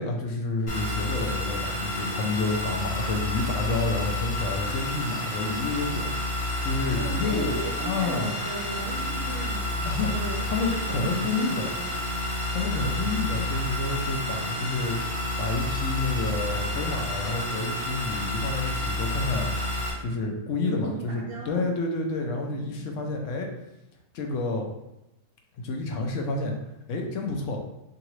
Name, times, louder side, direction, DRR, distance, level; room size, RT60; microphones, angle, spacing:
voice 1, 0.0-6.1 6.6-8.4 9.9-10.1 10.4-11.7 12.5-15.0 15.4-19.5 20.0-23.5 24.1-24.7 25.6-26.5 26.9-27.6, left 3 dB, 70° left, 2 dB, 0.9 m, -29 dB
wireless Game controller, 0.7-19.9, left 1 dB, 45° left, 1.4 m, -30 dB
voice 2, 6.9-12.0 20.2-21.6 22.4-23.1, right 3 dB, 55° right, -2 dB, 0.8 m, -37 dB
3.7 x 2.9 x 3.0 m, 0.92 s
omnidirectional pair, 1.4 m